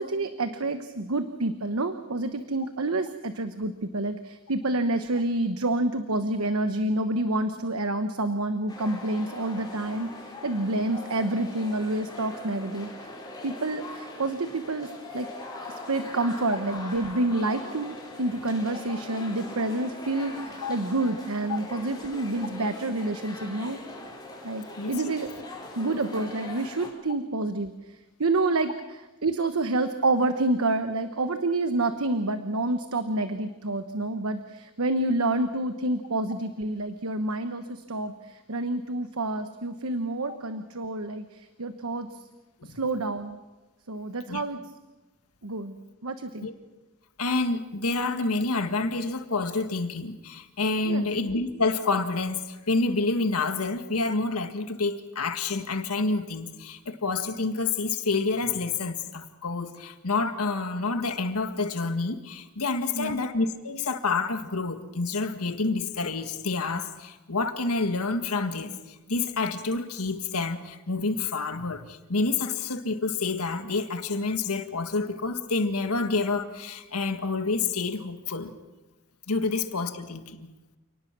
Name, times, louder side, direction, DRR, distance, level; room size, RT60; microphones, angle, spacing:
voice 1, 0.0-13.1 13.4-15.3 15.7-23.8 24.4-25.3 25.7-42.2 42.6-43.4 43.9-44.6 45.4-45.8 46.0-46.5 50.8-51.1 62.9-63.2, right 2 dB, 75° right, 9 dB, 1.1 m, -28 dB
sound 1, 8.7-26.9, left 2 dB, 20° left, 5.0 m, -41 dB
voice 2, 47.2-78.5 79.3-80.5, left 3 dB, 90° left, 8 dB, 1.8 m, -28 dB
29.0 x 19.0 x 6.1 m, 1.1 s
head